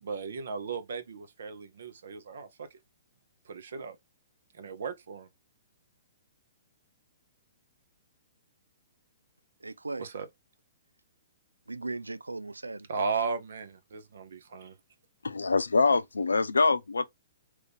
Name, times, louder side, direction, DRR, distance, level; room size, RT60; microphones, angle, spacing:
voice 1, 0.0-2.7 3.5-4.0 4.6-5.3 10.0-10.3 12.9-14.7, right 5 dB, 65° right, 0.8 m, -36 dB
voice 2, 9.6-10.1 11.7-13.3, right 3 dB, 90° right, 0.3 m, -38 dB
voice 3, 15.2-17.1, left 4 dB, 85° left, 0.4 m, -24 dB
3.1 x 2.5 x 3.3 m
figure-of-eight pair, 120°, 0 cm